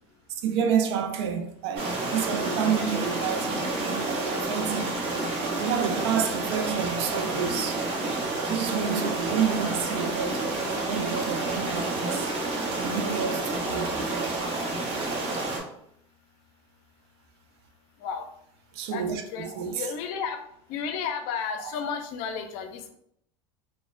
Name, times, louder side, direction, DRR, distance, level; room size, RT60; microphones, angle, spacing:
voice 1, 0.4-4.9 5.6-7.8 8.5-10.5 10.9-12.3 12.7-13.9 18.8-19.8, right 7 dB, 75° right, 0.4 m, -29 dB
sound 1, 1.8-15.6, right 2 dB, 45° right, 0.8 m, -29 dB
voice 2, 18.9-20.4 20.7-22.9, left 6 dB, 60° left, 0.5 m, -33 dB
3.0 x 2.1 x 2.4 m
supercardioid pair, 105°, 14 cm